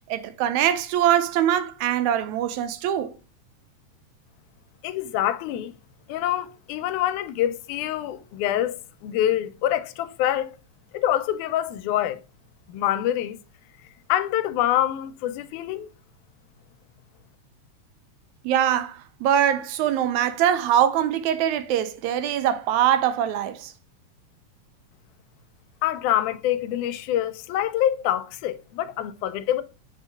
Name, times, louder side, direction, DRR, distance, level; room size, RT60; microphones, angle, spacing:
voice 1, 0.1-3.1 18.4-23.7, right 10 dB, 80° right, 1.9 m, -23 dB
voice 2, 4.8-5.7 6.1-10.5 10.9-12.2 12.7-13.4 14.1-15.9 25.8-29.6, left 12 dB, 85° left, 2.0 m, -25 dB
7.8 x 3.7 x 3.4 m
omnidirectional pair, 3.4 m